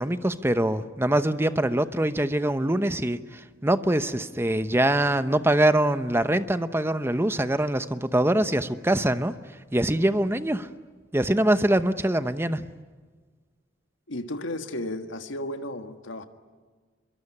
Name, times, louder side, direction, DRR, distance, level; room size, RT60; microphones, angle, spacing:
voice 1, 0.0-9.3 9.7-10.7 11.1-12.7, right 1 dB, 15° right, 12 dB, 0.8 m, -24 dB
voice 2, 14.1-16.2, left 1 dB, 85° left, 7 dB, 1.7 m, -33 dB
26.5 x 22.5 x 9.8 m, 1.4 s
head